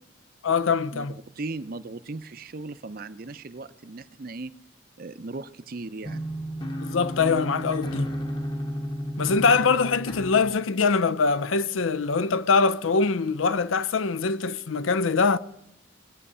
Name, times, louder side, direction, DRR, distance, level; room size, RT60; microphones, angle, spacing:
voice 1, 0.4-1.2 6.8-8.2 9.2-15.4, left 4 dB, 90° left, 0.6 m, -23 dB
voice 2, 1.3-4.5 5.0-6.2, right 3 dB, 50° right, 0.6 m, -37 dB
sound 1, 6.0-10.6, equal, 25° left, 0.8 m, -32 dB
22.0 x 8.5 x 5.6 m
head